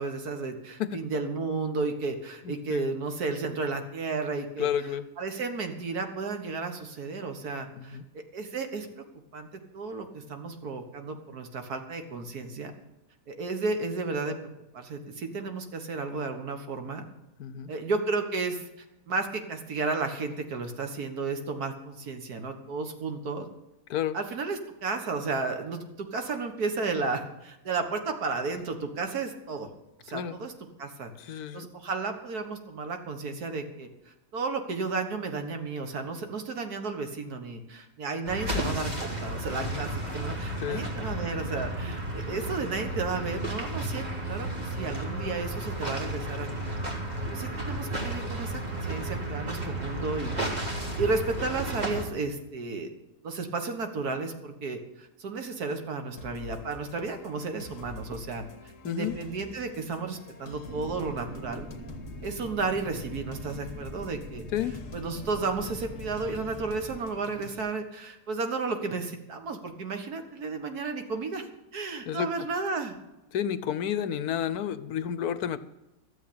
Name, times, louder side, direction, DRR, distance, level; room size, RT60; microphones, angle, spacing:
voice 1, 0.0-4.7 5.2-8.0 8.3-9.0 9.3-9.5 9.7-12.7 13.3-14.4 14.7-17.0 17.7-23.5 24.1-29.7 30.0-30.5 30.8-46.7 47.3-50.7 51.0-52.9 53.2-58.5 58.8-61.7 62.2-64.4 64.9-73.0, right 4 dB, 75° right, 6 dB, 2.0 m, -33 dB
voice 2, 2.4-2.9 4.6-5.1 7.7-8.1 17.4-17.7 23.9-24.1 30.1-30.4 31.2-31.7 39.6-39.8 40.6-40.8 58.8-59.2 64.5-64.8 72.1-72.3 73.3-75.6, left 9 dB, 75° left, 15 dB, 1.2 m, -31 dB
sound 1, 38.2-52.0, right 1 dB, 25° right, 2.3 m, -33 dB
sound 2, 56.2-67.6, left 3 dB, 55° left, 1.7 m, -46 dB
sound 3, 60.7-67.0, left 1 dB, 10° right, 0.9 m, -43 dB
13.0 x 7.5 x 8.6 m, 0.94 s
omnidirectional pair, 1.6 m